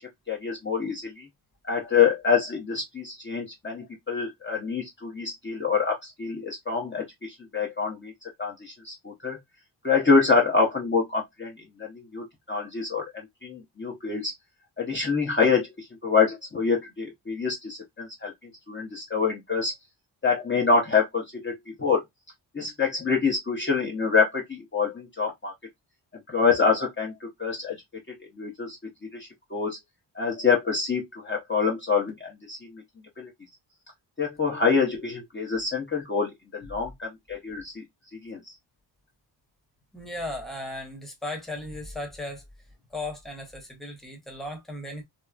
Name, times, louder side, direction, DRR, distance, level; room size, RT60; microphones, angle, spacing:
voice 1, 0.3-1.3 1.7-8.1 8.4-9.4 9.8-11.5 11.8-14.3 14.8-15.7 16.0-19.7 20.2-22.0 22.5-25.5 26.3-27.8 28.4-28.8 29.1-29.8 30.1-32.8 33.2-33.3 34.2-37.8 38.2-38.5, left 5 dB, 25° left, 0.8 m, -26 dB
voice 2, 39.9-42.4 42.9-45.0, left 1 dB, ahead, 1.0 m, -36 dB
2.9 x 2.1 x 2.3 m
cardioid pair, 90°, 43 cm